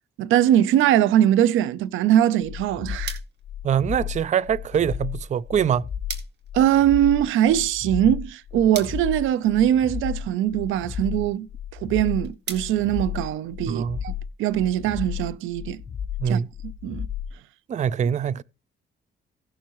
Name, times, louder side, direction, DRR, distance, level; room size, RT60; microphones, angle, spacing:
voice 1, 0.2-3.2 6.5-11.5 11.8-14.1 14.4-15.8 16.3-17.1, right 11 dB, 85° right, 0.6 m, -21 dB
sound 1, 2.4-17.4, left 9 dB, 40° left, 0.7 m, -33 dB
sound 2, 3.0-13.8, right 6 dB, 60° right, 2.2 m, -44 dB
voice 2, 3.6-5.8 13.7-14.0 16.2-16.5 17.7-18.4, right 8 dB, 35° right, 0.4 m, -23 dB
17.0 x 7.1 x 3.0 m
cardioid pair, 90°, 20 cm